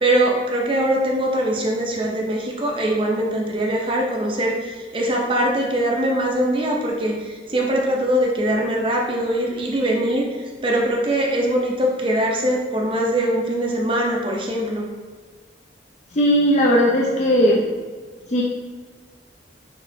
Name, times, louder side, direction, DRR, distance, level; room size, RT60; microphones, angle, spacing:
voice 1, 0.0-14.8, right 1 dB, 30° right, -1 dB, 0.6 m, -22 dB
voice 2, 16.1-17.6 18.3-18.4, equal, 40° left, -3 dB, 0.5 m, -17 dB
6.4 x 3.0 x 2.6 m, 1.5 s
head